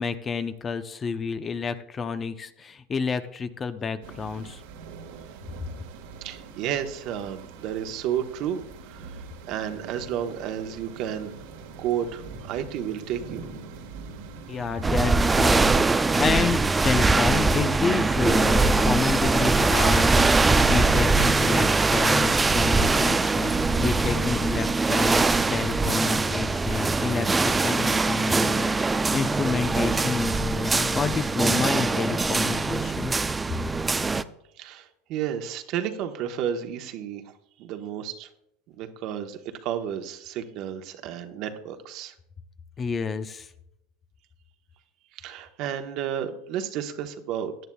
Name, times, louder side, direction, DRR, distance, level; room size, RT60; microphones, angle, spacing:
voice 1, 0.0-4.6 14.5-33.3 42.8-43.5, left 5 dB, 25° left, 10 dB, 0.7 m, -29 dB
sound 1, 4.0-16.5, right 5 dB, 75° right, 1.7 m, -43 dB
voice 2, 6.2-9.1 9.5-11.3 11.8-13.5 34.6-37.2 37.6-38.3 38.8-42.1 45.1-47.5, right 9 dB, 55° right, 6 dB, 1.2 m, -32 dB
sound 2, 14.8-34.2, right 3 dB, 15° right, 0.5 m, -22 dB
17.0 x 10.5 x 2.4 m, 0.79 s
hypercardioid pair, 100°, 0 cm